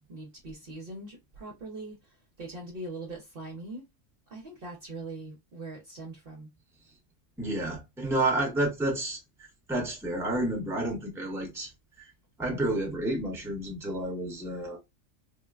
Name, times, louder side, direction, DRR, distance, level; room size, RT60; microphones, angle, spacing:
voice 1, 0.1-3.8 4.3-6.5, right 2 dB, 50° right, 0.8 m, -41 dB
voice 2, 7.4-9.2 9.7-11.7 12.0-12.1 12.4-14.8, right 1 dB, ahead, 0.8 m, -30 dB
3.7 x 2.1 x 2.3 m
omnidirectional pair, 1.4 m